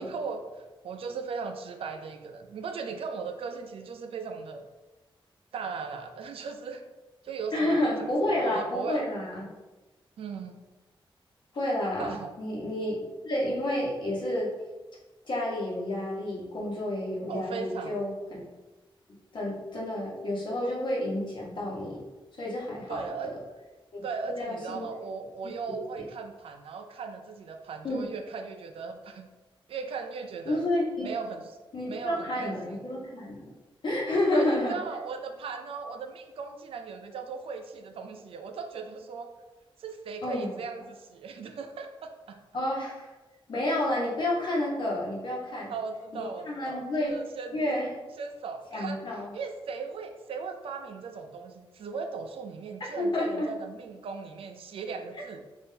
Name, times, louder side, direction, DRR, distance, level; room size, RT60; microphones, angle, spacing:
voice 1, 0.0-4.7 5.5-6.8 7.2-7.9 8.2-9.1 10.2-10.6 12.0-12.3 17.3-18.0 22.9-23.4 24.0-29.3 29.7-30.7 31.0-31.5 31.9-32.8 34.3-39.3 39.8-42.4 45.7-47.7 48.2-55.4, right 5 dB, 85° right, 6 dB, 0.4 m, -38 dB
voice 2, 7.5-9.4 11.5-14.5 15.3-18.4 19.3-22.0 22.4-23.0 23.9-24.0 24.4-24.9 25.4-25.5 27.8-28.1 30.4-31.1 31.7-33.5 33.8-34.8 40.2-40.5 42.5-43.1 43.5-45.7 46.1-47.2 47.5-47.9 48.7-49.3 53.0-53.5, left 1 dB, 55° left, -4 dB, 1.0 m, -30 dB
3.6 x 2.5 x 2.7 m, 1.1 s
wide cardioid pair, 135°, 9 cm